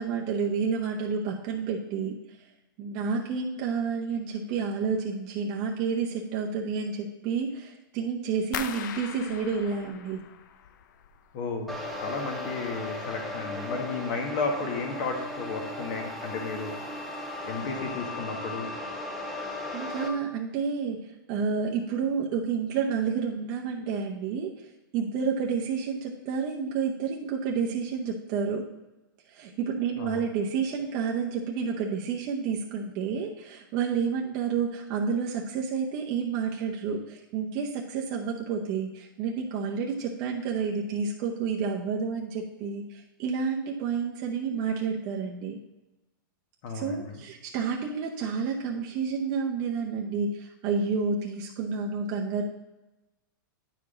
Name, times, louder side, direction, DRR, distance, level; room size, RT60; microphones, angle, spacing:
voice 1, 0.0-2.1 2.8-10.2 19.7-24.6 24.9-28.6 29.3-45.6 46.7-52.4, right 5 dB, 35° right, -1 dB, 0.8 m, -30 dB
sound 1, 8.5-11.4 11.7-12.4 12.7-13.2 13.6-13.7, left 9 dB, 60° left, 0.5 m, -40 dB
voice 2, 11.3-16.7 17.4-18.7 30.0-30.2 46.6-47.2, left 4 dB, 45° left, 2 dB, 1.6 m, -33 dB
sound 2, 11.7-20.1, left 2 dB, ahead, 0.8 m, -36 dB
9.8 x 4.8 x 3.7 m, 1.1 s
hypercardioid pair, 150°, 11 cm